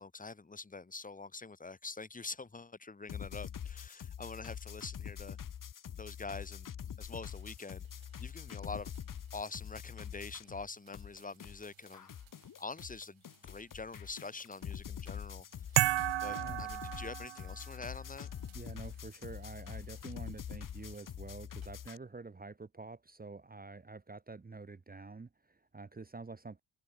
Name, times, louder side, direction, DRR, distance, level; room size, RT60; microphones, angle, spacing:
voice 1, 0.0-5.4 6.0-6.7 7.0-7.9 8.2-9.0 9.3-12.1 12.6-18.3, left 3 dB, 15° left, 1.5 m, -45 dB
sound 1, 3.1-10.7 10.9-22.0, left 8 dB, 45° left, 1.2 m, -45 dB
sound 2, 7.1-21.1 21.6-22.2, right 11 dB, 85° right, 7.7 m, -68 dB
sound 3, 15.8-17.7, right 15 dB, 65° right, 0.7 m, -32 dB
voice 2, 16.3-16.6 18.5-26.6, right 3 dB, 20° right, 1.1 m, -48 dB
cardioid pair, 115°, 46 cm